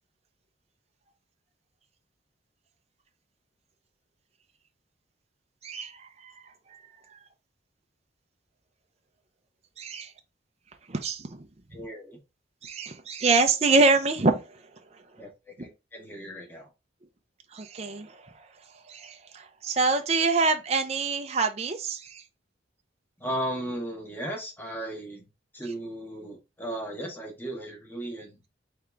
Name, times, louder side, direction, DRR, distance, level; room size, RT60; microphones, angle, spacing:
voice 1, 5.6-6.3 6.7-6.8 9.8-10.1 10.9-11.5 12.6-14.6 17.5-18.3 18.9-22.2, right 3 dB, 35° right, 0.6 m, -26 dB
voice 2, 11.7-12.2 15.2-16.7 23.2-25.3 25.5-28.5, right 1 dB, 10° left, 1.2 m, -36 dB
3.8 x 3.5 x 3.4 m
head